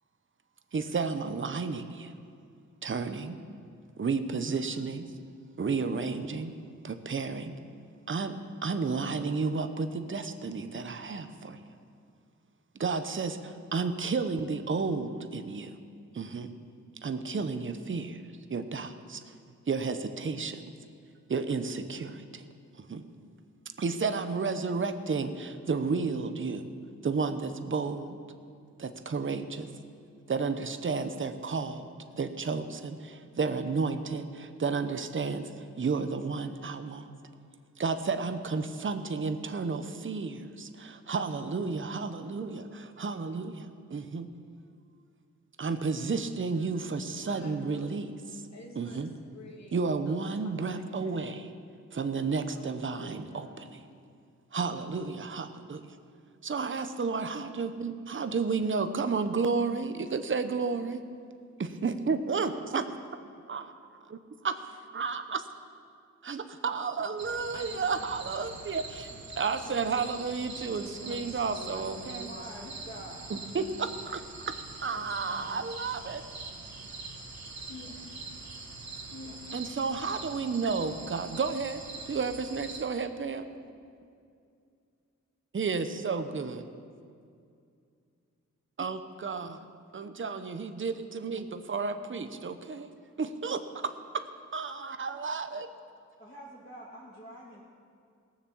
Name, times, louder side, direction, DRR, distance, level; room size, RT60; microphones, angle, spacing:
voice 1, 0.7-2.1 2.8-3.4 4.0-5.1 5.6-6.5 6.8-7.5 8.1-11.6 12.8-15.8 16.1-16.5 17.0-19.2 19.7-20.6 21.3-22.4 22.8-23.1 23.8-26.7 27.0-28.2 28.8-29.7 30.3-31.9 32.1-37.1 37.8-44.3 45.6-48.1 48.8-49.1 49.7-51.5 51.9-53.8 54.5-56.0 56.4-61.0 61.6-62.9 63.4-64.2 64.4-64.6 64.9-65.4 66.2-69.1 69.4-72.3 73.3-76.2 79.5-83.5 85.5-86.7 88.8-89.6 89.9-92.9 93.2-94.2 94.5-95.7, right 4 dB, 40° right, 9 dB, 0.9 m, -32 dB
voice 2, 47.2-48.0 48.5-51.1 52.4-53.7 67.5-69.2 69.6-69.9 70.5-72.8 74.9-75.7 77.7-78.2 79.1-79.7, left 2 dB, 60° left, 0 dB, 2.2 m, -49 dB
sound 1, 67.2-82.8, right 3 dB, 60° right, 1.7 m, -43 dB
voice 3, 72.2-73.5 96.2-97.6, right 1 dB, 30° left, -7 dB, 2.5 m, -46 dB
18.0 x 7.2 x 7.2 m, 2.3 s
cardioid pair, 75°, 31 cm